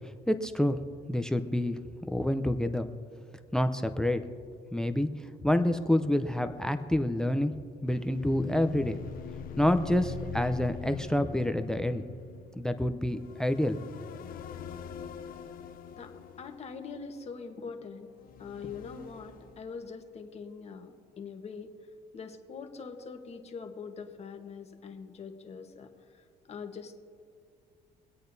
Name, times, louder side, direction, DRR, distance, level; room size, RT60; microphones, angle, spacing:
voice 1, 0.3-0.8 1.1-1.8 2.1-2.9 3.5-4.2 4.7-5.1 5.4-7.5 7.8-9.0 9.6-12.0 12.6-13.8, left 1 dB, 5° left, 10 dB, 0.5 m, -27 dB
sound 1, 7.9-17.4 18.1-20.2, left 6 dB, 60° left, 0.7 m, -43 dB
voice 2, 15.9-18.1 18.4-21.7 22.1-27.0, left 5 dB, 40° left, 5 dB, 1.2 m, -43 dB
24.0 x 8.4 x 2.7 m, 2.2 s
cardioid pair, 110°, 17 cm